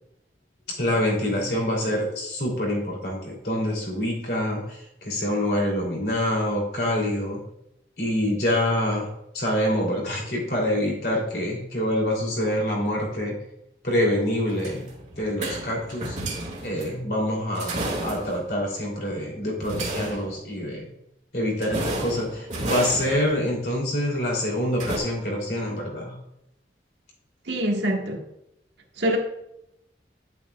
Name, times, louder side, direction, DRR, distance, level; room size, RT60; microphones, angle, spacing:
voice 1, 0.8-7.4 8.0-9.1 9.3-13.4 13.8-14.9 15.2-16.2 16.6-20.9 21.3-26.2, left 1 dB, 60° left, 3.1 m, -26 dB
sound 1, 14.5-16.9 17.5-18.5 19.6-20.5 21.6-23.4 24.8-25.0, right 2 dB, 40° right, 2.0 m, -32 dB
voice 2, 27.5-28.2 29.0-29.2, right 1 dB, 85° right, 1.6 m, -24 dB
9.8 x 8.2 x 2.4 m
head